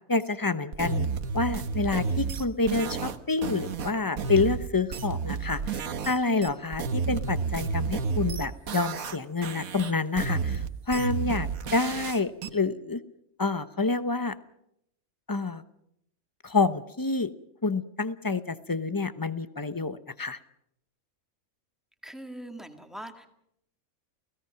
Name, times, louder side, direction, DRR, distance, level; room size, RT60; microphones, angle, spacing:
voice 1, 0.1-1.1 1.3-13.0 13.4-14.4 15.3-15.6 16.4-17.3 17.6-20.4, left 3 dB, 20° left, 13 dB, 0.7 m, -28 dB
sound 1, 0.7-6.2 6.4-9.2 9.4-12.5, right 5 dB, 70° right, 1.6 m, -31 dB
voice 2, 22.0-23.3, right 1 dB, ahead, 5 dB, 2.0 m, -41 dB
29.5 x 17.5 x 5.8 m, 0.76 s
omnidirectional pair, 1.5 m